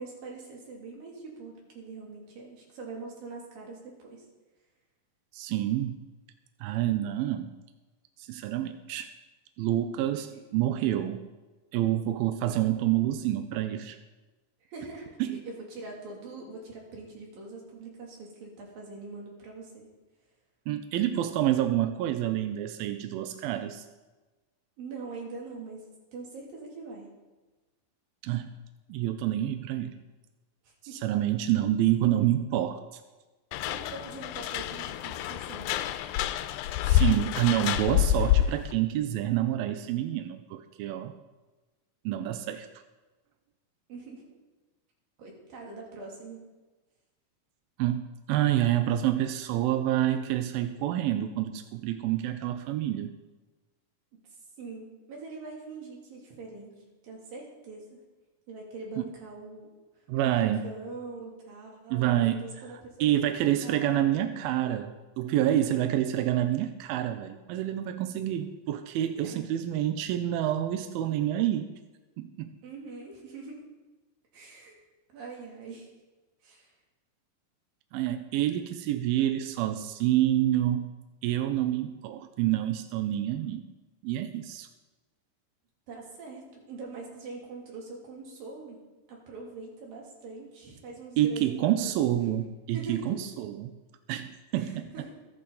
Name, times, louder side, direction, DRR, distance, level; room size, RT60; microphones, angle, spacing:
voice 1, 0.0-4.2 10.3-10.4 14.6-19.9 24.8-25.8 26.1-27.2 30.6-31.1 33.5-36.1 43.9-44.2 45.2-46.4 54.6-58.0 58.5-59.7 60.2-63.1 63.5-63.9 69.2-69.4 72.6-73.6 74.3-74.8 75.1-75.9 76.4-76.7 85.9-88.8 89.1-92.1 92.7-93.1 94.5-95.1, right 3 dB, 70° right, -2 dB, 4.5 m, -43 dB
voice 2, 5.3-6.0 6.6-7.5 8.2-9.1 9.6-11.3 11.7-14.0 15.2-15.4 20.7-23.8 28.2-28.5 28.9-30.0 30.9-32.8 36.9-41.1 42.1-42.7 47.8-53.1 59.0-59.1 60.1-60.7 61.9-62.5 63.0-71.7 72.2-72.5 77.9-80.9 81.2-83.6 84.0-84.7 91.2-93.8 94.1-94.9, right 12 dB, 90° right, 8 dB, 2.5 m, -28 dB
sound 1, 33.5-38.7, left 12 dB, 80° left, 2.3 m, -27 dB
22.0 x 8.8 x 4.0 m, 1.2 s
omnidirectional pair, 4.2 m